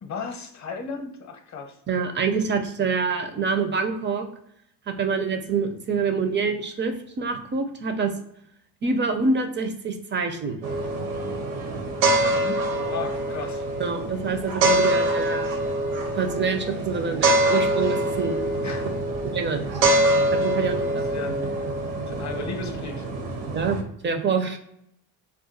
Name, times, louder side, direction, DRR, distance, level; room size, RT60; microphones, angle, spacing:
voice 1, 0.0-1.8 12.3-13.6 18.6-18.9 20.9-21.5 22.1-23.0, left 4 dB, 40° left, 5 dB, 0.7 m, -35 dB
voice 2, 1.9-4.3 4.9-8.1 8.8-10.6 13.8-15.6 16.2-18.4 19.2-19.8 20.3-21.1 23.5-24.6, right 5 dB, 25° right, 7 dB, 0.4 m, -26 dB
sound 1, 10.6-23.8, right 1 dB, 85° right, 0.9 m, -25 dB
2.4 x 2.3 x 3.9 m, 0.74 s
cardioid pair, 95°, 46 cm